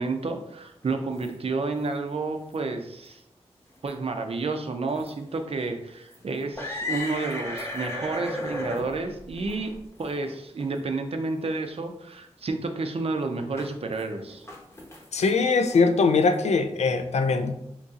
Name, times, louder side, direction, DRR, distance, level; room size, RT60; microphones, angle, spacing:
voice 1, 0.0-3.2 3.8-9.7 10.0-14.5, right 3 dB, 60° right, 5 dB, 0.5 m, -30 dB
sound 1, 0.8-1.3 1.7-1.9 2.5-2.6 3.0-3.1 3.7-4.0 4.9-5.1 5.7-5.8 6.1-10.3 10.6-10.7 11.4-11.5 13.6-14.0 14.3-16.4, left 2 dB, 25° left, 0.9 m, -36 dB
voice 2, 15.1-17.5, left 4 dB, 75° left, 8 dB, 0.4 m, -22 dB
2.9 x 2.7 x 3.6 m, 0.79 s
wide cardioid pair, 80°, 11 cm